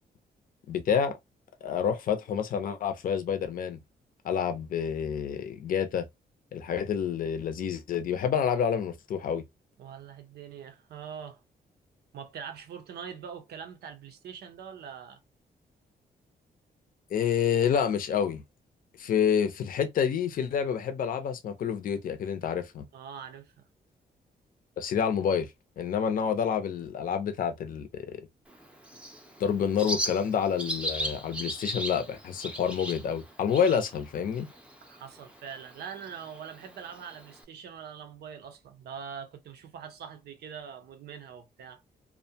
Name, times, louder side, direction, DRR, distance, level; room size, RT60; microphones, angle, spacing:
voice 1, 0.7-1.2 1.6-3.8 4.2-6.1 6.5-9.4 17.1-18.4 19.0-22.9 24.8-25.5 25.8-28.3 29.4-34.5, left 7 dB, 60° left, 0.5 m, -28 dB
voice 2, 9.8-11.4 12.1-15.2 22.9-23.6 33.5-33.7 34.8-41.8, right 7 dB, 90° right, 0.6 m, -43 dB
Bird, 28.5-37.4, equal, 5° right, 0.5 m, -38 dB
2.5 x 2.1 x 2.7 m
cardioid pair, 120°, 16 cm